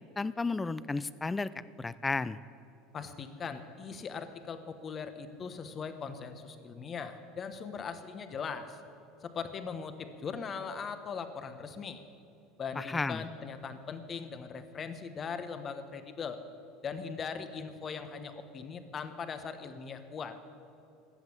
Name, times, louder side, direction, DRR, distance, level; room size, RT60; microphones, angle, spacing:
voice 1, 0.2-2.4 12.8-13.2, left 3 dB, 15° left, 17 dB, 0.4 m, -33 dB
voice 2, 2.9-8.8 9.2-12.0 12.6-16.4 16.8-20.4, left 5 dB, 35° left, 10 dB, 1.1 m, -40 dB
13.0 x 8.1 x 8.5 m, 2.8 s
supercardioid pair, 105°, 0 cm